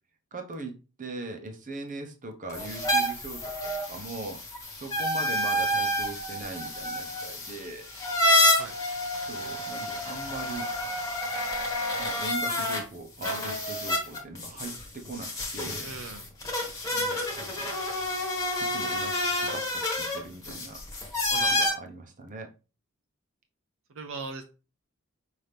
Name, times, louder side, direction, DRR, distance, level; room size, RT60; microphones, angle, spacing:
voice 1, 0.3-4.4 4.8-7.9 9.2-10.7 12.0-15.9 16.9-17.7 18.7-20.8 21.3-22.5, right 2 dB, 40° right, 4 dB, 0.8 m, -40 dB
sound 1, 2.5-12.8 13.2-21.7, left 1 dB, 15° left, 1.4 m, -29 dB
voice 2, 15.8-16.3 21.3-21.7 23.9-24.4, right 4 dB, 65° right, 4 dB, 0.6 m, -39 dB
5.7 x 2.8 x 3.3 m, 0.32 s
head